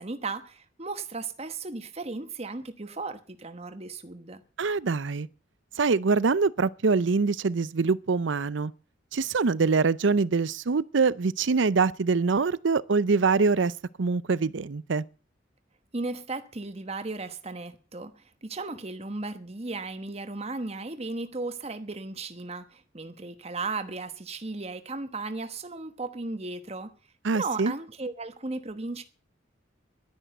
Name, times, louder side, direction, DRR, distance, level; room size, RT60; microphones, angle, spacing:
voice 1, 0.0-4.4 15.9-26.9 27.3-29.0, right 3 dB, 30° right, 1.1 m, -35 dB
voice 2, 4.6-5.3 5.8-8.7 9.1-13.7 14.0-15.0 27.2-27.7, right 4 dB, 70° right, 0.6 m, -24 dB
11.5 x 10.0 x 7.9 m
head